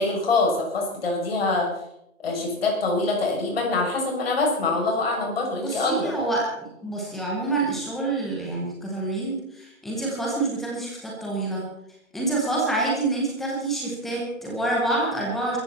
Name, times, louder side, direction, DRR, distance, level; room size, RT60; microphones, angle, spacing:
voice 1, 0.0-1.7 2.2-6.1, left 3 dB, 45° left, 0 dB, 6.5 m, -24 dB
voice 2, 5.6-6.5 6.8-11.7 12.1-15.6, right 2 dB, ahead, -3 dB, 0.7 m, -27 dB
22.5 x 14.0 x 4.1 m, 0.79 s
figure-of-eight pair, 155°, 42 cm